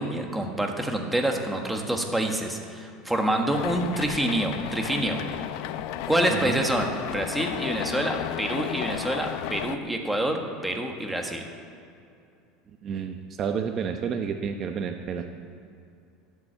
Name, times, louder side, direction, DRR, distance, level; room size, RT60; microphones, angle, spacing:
voice 1, 0.0-5.2 6.1-11.4, right 1 dB, 5° right, 2 dB, 1.5 m, -27 dB
sound 1, 3.5-9.8, left 11 dB, 65° left, 0.6 m, -33 dB
voice 2, 6.3-6.6 12.8-15.3, right 7 dB, 35° right, 5 dB, 0.8 m, -30 dB
13.0 x 9.7 x 8.9 m, 2.5 s
supercardioid pair, 145°, 0 cm